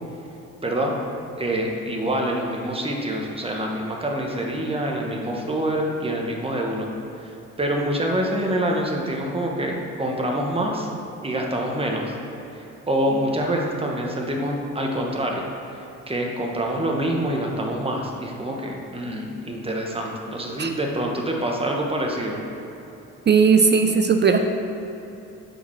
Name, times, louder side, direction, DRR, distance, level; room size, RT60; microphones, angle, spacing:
voice 1, 0.6-0.9 1.4-6.9 7.2-7.3 7.6-10.9 11.2-12.1 12.5-15.4 16.1-22.3, right 1 dB, 20° right, 0 dB, 1.4 m, -26 dB
voice 2, 23.3-24.4, right 5 dB, 35° right, 6 dB, 0.6 m, -17 dB
7.9 x 5.0 x 6.3 m, 3.0 s
cardioid pair, 90°, 30 cm